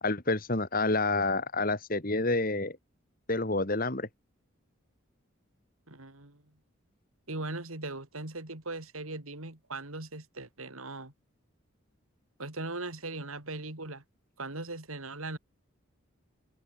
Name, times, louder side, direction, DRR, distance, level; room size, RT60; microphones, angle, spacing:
voice 1, 0.0-2.8 3.3-4.1, left 2 dB, 40° left, 2.2 m, -28 dB
voice 2, 5.9-6.4 7.3-11.1 12.4-14.0 14.4-15.4, right 2 dB, 85° right, 4.2 m, -39 dB
head